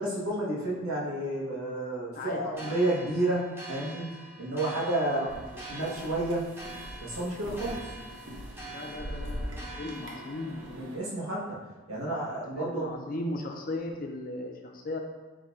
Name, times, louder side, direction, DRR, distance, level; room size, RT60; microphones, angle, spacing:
voice 1, 0.0-4.1 4.4-5.2 5.5-6.5 7.0-7.9 10.7-11.6 11.9-12.9, right 1 dB, 85° right, -4 dB, 1.1 m, -31 dB
voice 2, 2.2-2.7 5.0-5.3 8.6-10.7 12.3-15.0, left 2 dB, 40° left, 2 dB, 0.4 m, -37 dB
sound 1, 2.5-10.7, right 2 dB, 10° right, 0.7 m, -45 dB
sound 2, 5.3-11.0, equal, 60° right, 0.6 m, -42 dB
4.9 x 2.2 x 4.0 m, 1.2 s
head